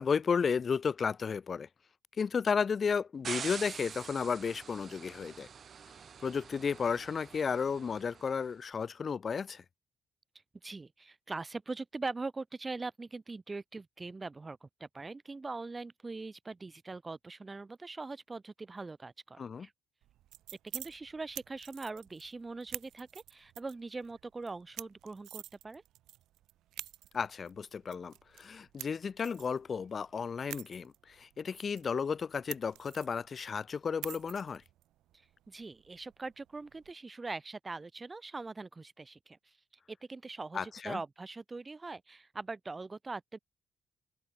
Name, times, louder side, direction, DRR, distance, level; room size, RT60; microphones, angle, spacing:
voice 1, 0.0-1.7 2.2-5.5 6.2-9.6 19.4-19.7 27.1-34.6 40.5-41.0, left 6 dB, 45° left, 0.5 m, -33 dB
sound 1, 3.2-8.4, right 7 dB, 50° right, 1.4 m, -45 dB
voice 2, 10.6-19.7 20.7-25.8 35.5-39.5 39.9-43.4, right 3 dB, 25° right, 0.7 m, -42 dB
sound 2, 20.0-36.9, right 14 dB, 85° right, 1.0 m, -50 dB
open air
cardioid pair, 90°, 0 cm